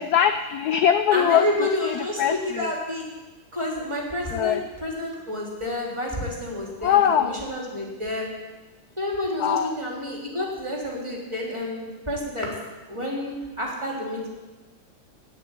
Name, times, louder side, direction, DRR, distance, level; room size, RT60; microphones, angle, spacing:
voice 1, 0.0-1.5 1.8-2.7 4.3-4.6 6.8-7.4 9.4-9.8, left 9 dB, 70° left, 9 dB, 0.9 m, -22 dB
voice 2, 1.1-3.1 3.5-8.3 9.0-12.5 12.9-14.3, left 1 dB, 15° right, -2 dB, 3.4 m, -29 dB
17.5 x 6.7 x 9.8 m, 1.2 s
omnidirectional pair, 2.3 m